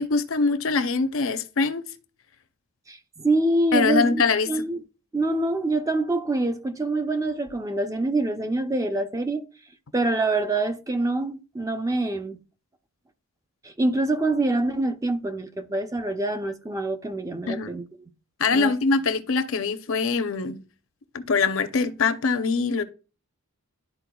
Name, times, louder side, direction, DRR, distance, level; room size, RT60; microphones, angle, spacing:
voice 1, 0.0-1.8 3.7-4.5 17.5-17.7 18.4-20.6 21.3-22.8, left 4 dB, 60° left, 0.6 m, -23 dB
voice 2, 2.9-4.8 5.1-9.5 9.9-12.4 13.6-18.1 18.5-18.7, right 2 dB, 15° right, 0.5 m, -25 dB
12.0 x 4.4 x 2.3 m
head